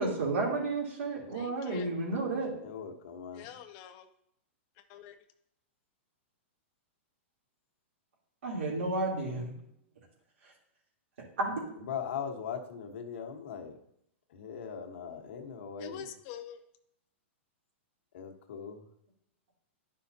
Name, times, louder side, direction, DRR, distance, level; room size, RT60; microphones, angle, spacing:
voice 1, 0.0-2.5 8.4-9.5 11.4-11.6, right 3 dB, 80° right, -3 dB, 3.1 m, -31 dB
voice 2, 1.3-1.9 3.3-4.1 4.9-5.2 15.8-16.6, left 9 dB, 30° left, 9 dB, 0.5 m, -45 dB
voice 3, 2.6-3.5 11.8-13.8 14.3-16.1 18.1-18.8, left 7 dB, 65° left, 4 dB, 1.3 m, -40 dB
10.5 x 5.7 x 2.8 m, 0.75 s
hypercardioid pair, 165°, 7 cm